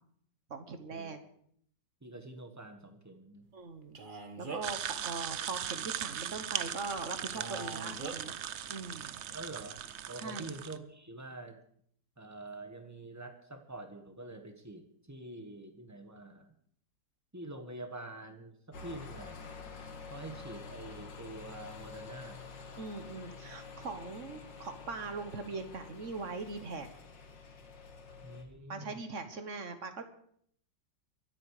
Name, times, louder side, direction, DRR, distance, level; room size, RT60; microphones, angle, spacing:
voice 1, 0.5-1.2 3.5-8.4 8.7-9.2 10.2-10.5 22.8-26.9 28.7-30.0, right 4 dB, 45° right, 9 dB, 1.5 m, -41 dB
voice 2, 2.0-3.5 9.3-9.8 10.1-11.6 12.2-16.5 17.3-19.4 20.1-22.4 28.2-29.0, right 2 dB, 10° right, 6 dB, 1.4 m, -46 dB
Male speech man speaking, 3.9-4.8 7.3-8.2, right 3 dB, 30° right, 1.5 m, -42 dB
sound 1, 4.6-10.8, right 9 dB, 65° right, 0.7 m, -39 dB
sound 2, 18.7-28.4, left 4 dB, 80° left, 2.4 m, -48 dB
23.5 x 8.7 x 4.9 m, 0.64 s
omnidirectional pair, 1.9 m